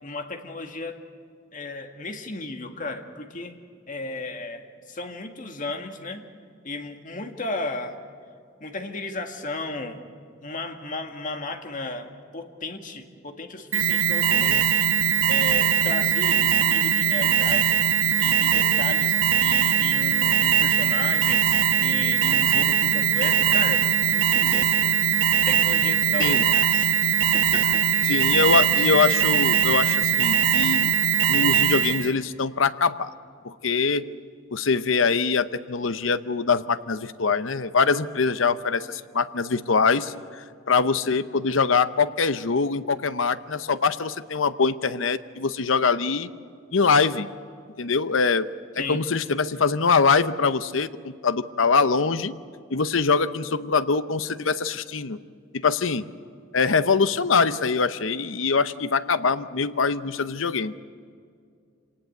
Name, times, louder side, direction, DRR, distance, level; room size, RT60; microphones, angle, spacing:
voice 1, 0.0-1.0 1.5-3.6 3.9-6.2 6.6-8.0 8.6-10.0 10.4-14.9 15.3-17.8 18.2-25.0 25.5-26.9 27.3-27.6 27.9-28.3 48.8-49.0, left 2 dB, 40° left, 5 dB, 1.9 m, -34 dB
Alarm, 13.7-32.1, right 9 dB, 85° right, 1.0 m, -21 dB
voice 2, 14.3-14.6 26.2-26.4 28.1-30.9 31.3-33.1 33.4-34.1 34.5-46.3 46.7-47.3 47.8-48.5 48.8-52.3 52.7-55.2 55.5-56.0 56.5-60.7, left 5 dB, 85° left, 13 dB, 0.8 m, -23 dB
26.5 x 19.0 x 8.0 m, 2.3 s
head